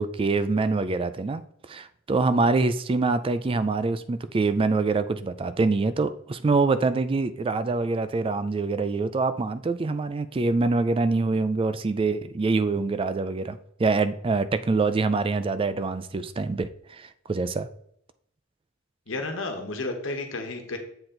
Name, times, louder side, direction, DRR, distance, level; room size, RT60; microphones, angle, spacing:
voice 1, 0.0-1.4 1.7-17.7, right 3 dB, 30° right, 12 dB, 0.3 m, -25 dB
voice 2, 19.1-20.8, left 2 dB, 75° left, 4 dB, 1.3 m, -32 dB
7.8 x 4.4 x 3.8 m, 0.70 s
head